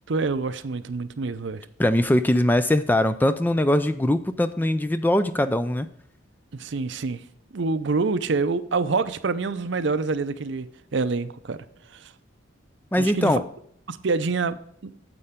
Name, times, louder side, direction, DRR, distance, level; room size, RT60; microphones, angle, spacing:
voice 1, 0.1-1.7 6.5-7.2 7.5-10.7 10.9-11.6 11.9-12.0 13.0-13.3 13.9-14.9, right 4 dB, 60° right, 0.6 m, -26 dB
voice 2, 1.8-5.9 12.9-13.4, left 1 dB, 10° left, 0.3 m, -21 dB
9.9 x 7.6 x 3.6 m
head